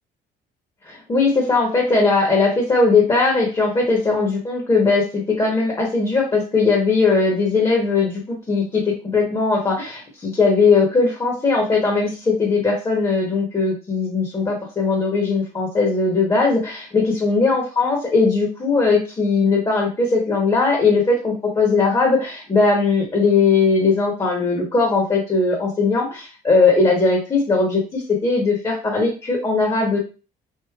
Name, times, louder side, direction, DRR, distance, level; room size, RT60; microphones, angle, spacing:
voice 1, 0.8-30.0, left 4 dB, 25° left, -1 dB, 0.9 m, -19 dB
3.1 x 2.7 x 2.3 m, 0.34 s
cardioid pair, 110°, 17 cm